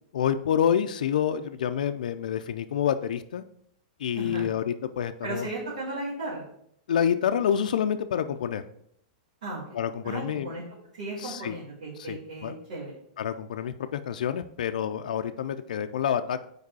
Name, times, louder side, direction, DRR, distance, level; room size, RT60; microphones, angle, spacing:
voice 1, 0.1-3.4 4.0-5.5 6.9-8.6 9.7-10.5 11.2-11.6 12.0-12.5 13.2-16.5, left 8 dB, 85° left, 8 dB, 0.3 m, -28 dB
voice 2, 4.1-4.5 5.2-6.4 9.4-9.8 10.0-10.6 10.9-12.9, right 2 dB, 85° right, -8 dB, 2.4 m, -35 dB
4.8 x 4.6 x 4.6 m, 0.71 s
supercardioid pair, 180°, 4 cm